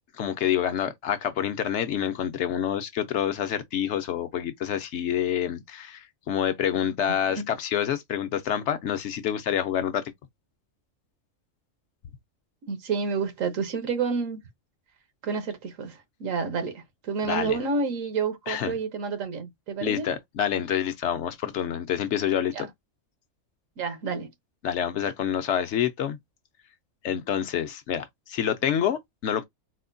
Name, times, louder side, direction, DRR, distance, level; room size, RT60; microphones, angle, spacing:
voice 1, 0.1-10.0 17.2-17.6 18.5-18.8 19.8-22.7 24.6-26.2 27.0-29.4, left 9 dB, 70° left, 0.8 m, -27 dB
voice 2, 12.7-14.4 15.2-20.1 22.5-22.7 23.8-24.3, right 5 dB, 80° right, 1.3 m, -29 dB
4.2 x 2.2 x 2.5 m
omnidirectional pair, 1.3 m